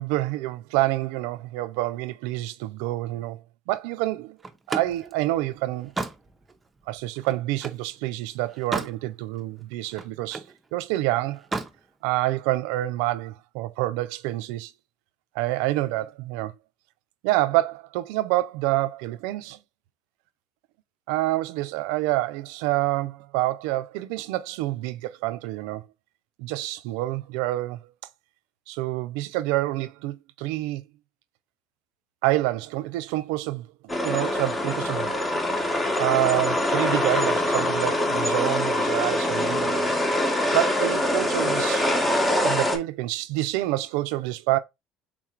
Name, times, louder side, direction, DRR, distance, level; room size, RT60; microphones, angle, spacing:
voice 1, 0.0-3.4 3.7-4.4 4.7-5.9 6.9-10.4 10.7-11.4 12.0-14.7 15.3-16.5 17.2-19.6 21.1-25.8 26.4-27.8 28.7-30.8 32.2-35.1 36.0-39.9 40.5-41.9 42.4-44.6, right 17 dB, 85° right, 0.4 m, -27 dB
Slam, 4.4-7.9 8.3-9.0 9.4-10.6 11.3-11.8, right 3 dB, 20° right, 0.6 m, -34 dB
sound 1, 33.9-42.8, left 1 dB, 15° left, 0.9 m, -24 dB
3.6 x 2.4 x 4.4 m
cardioid pair, 115°, 0 cm